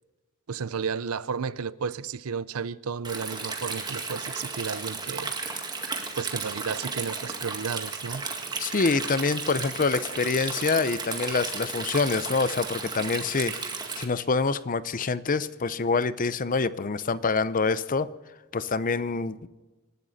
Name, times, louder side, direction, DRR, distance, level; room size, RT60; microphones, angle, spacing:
voice 1, 0.5-5.3 6.2-8.3, right 6 dB, 80° right, 0.6 m, -33 dB
Stream, 3.0-14.0, right 4 dB, 20° right, 1.9 m, -34 dB
voice 2, 8.6-13.5 14.0-18.1 18.5-19.5, left 4 dB, 40° left, 0.6 m, -26 dB
26.5 x 12.5 x 4.1 m
head